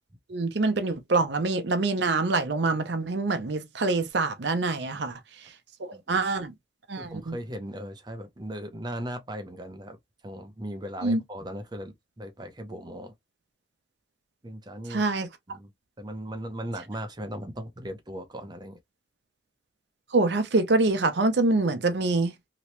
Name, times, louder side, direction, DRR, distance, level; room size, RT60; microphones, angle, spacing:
voice 1, 0.3-5.5 5.8-6.5 6.9-7.4 11.0-11.2 14.9-15.3 20.1-22.4, right 3 dB, 65° right, 0.6 m, -25 dB
voice 2, 5.9-6.2 7.0-10.0 10.2-13.1 14.4-15.0 15.5-15.7 16.0-18.8, equal, 20° right, 0.6 m, -38 dB
2.9 x 2.7 x 3.2 m
head